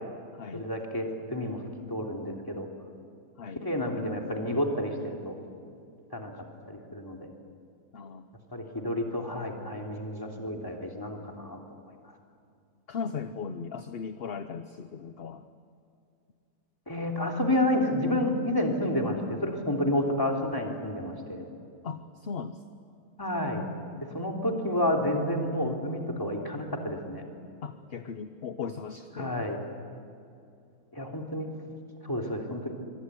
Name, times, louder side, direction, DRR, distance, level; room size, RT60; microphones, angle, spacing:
voice 1, 0.5-1.6 1.9-2.7 3.6-5.4 6.1-6.3 6.7-7.3 8.5-11.6 16.9-21.5 23.2-23.6 24.1-27.2 29.2-29.6 30.9-31.5 32.0-32.7, left 1 dB, 15° left, 1 dB, 3.2 m, -30 dB
voice 2, 7.9-8.3 12.9-15.5 21.8-22.6 27.6-29.5, left 6 dB, 45° left, 10 dB, 0.9 m, -37 dB
24.5 x 24.5 x 9.6 m, 2.4 s
omnidirectional pair, 1.7 m